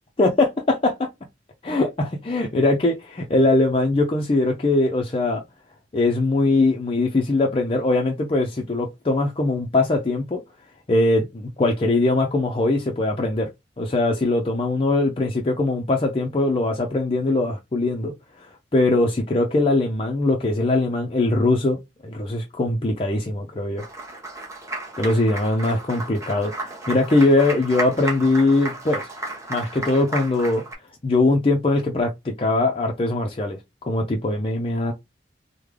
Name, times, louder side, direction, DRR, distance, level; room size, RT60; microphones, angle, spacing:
voice 1, 0.2-1.1 1.6-5.4 5.9-10.4 10.9-13.5 13.8-18.1 18.4-23.8 25.0-29.1 29.5-30.6 31.0-34.9, left 2 dB, 30° left, 0.5 m, -21 dB
Applause, 23.8-30.7, right 2 dB, 15° right, 1.0 m, -33 dB
3.2 x 2.1 x 3.6 m
head